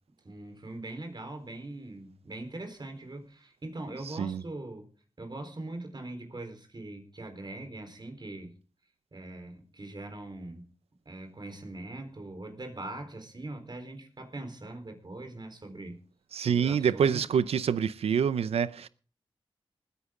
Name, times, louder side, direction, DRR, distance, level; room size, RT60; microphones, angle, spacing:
voice 1, 0.2-4.9 5.2-8.6 9.1-10.7 11.1-16.0 16.4-17.4, right 2 dB, 45° right, 4.1 m, -41 dB
voice 2, 16.3-18.9, right 7 dB, 90° right, 0.6 m, -26 dB
20.0 x 10.0 x 3.8 m
cardioid pair, 45°, 10 cm